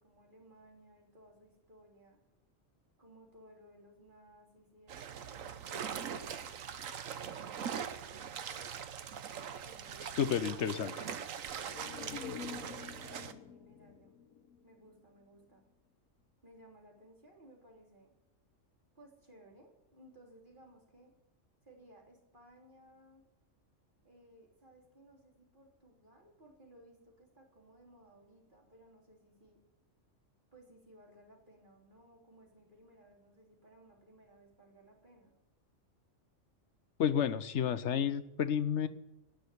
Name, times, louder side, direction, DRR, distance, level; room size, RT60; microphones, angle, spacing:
voice 1, 0.0-2.2 3.0-6.3 7.1-8.6 9.6-11.2 11.9-14.1 14.6-15.6 16.4-18.1 18.9-21.1 21.6-23.2 24.0-29.6 30.5-35.3, right 1 dB, 40° right, -2 dB, 3.7 m, -60 dB
sound 1, 4.9-13.3, right 7 dB, 80° right, 1.3 m, -42 dB
voice 2, 10.0-10.9 37.0-38.9, left 8 dB, 65° left, 13 dB, 1.1 m, -31 dB
sound 2, 11.5-15.2 15.6-15.7, left 7 dB, 85° left, 1.4 m, -48 dB
17.0 x 6.4 x 9.9 m, 0.91 s
omnidirectional pair, 1.4 m